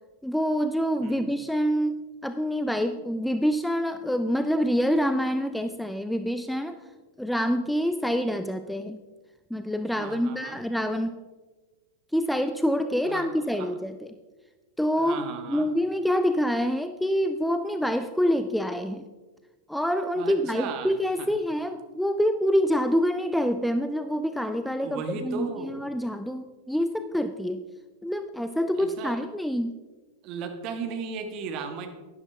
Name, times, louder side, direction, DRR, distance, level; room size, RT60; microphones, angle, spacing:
voice 1, 0.2-6.8 7.2-9.0 9.5-11.2 12.1-14.1 14.8-15.2 15.5-19.0 19.7-27.7 28.0-29.7, equal, ahead, 9 dB, 0.4 m, -26 dB
voice 2, 1.0-1.3 10.0-10.6 13.1-13.3 13.6-13.7 15.0-15.7 20.2-21.3 24.8-25.8 28.8-29.2 30.2-31.9, right 5 dB, 40° right, 6 dB, 1.4 m, -36 dB
12.0 x 11.0 x 3.4 m, 1.3 s
figure-of-eight pair, 90°, 0 cm